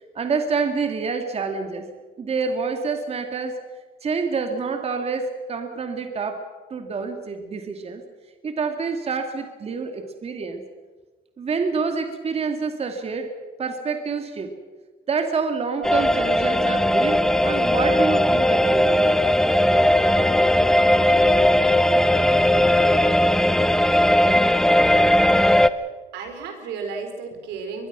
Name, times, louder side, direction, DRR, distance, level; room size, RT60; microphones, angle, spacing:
voice 1, 0.1-1.9 2.2-3.6 4.0-6.5 6.7-8.0 8.4-10.6 11.4-13.3 13.6-14.5 15.1-19.1, right 5 dB, 35° right, 5 dB, 2.3 m, -27 dB
sound 1, 15.8-25.7, left 1 dB, 5° left, 0.8 m, -18 dB
voice 2, 25.4-27.9, right 5 dB, 85° right, 5 dB, 4.5 m, -34 dB
23.0 x 22.0 x 6.1 m, 1.3 s
cardioid pair, 110°, 17 cm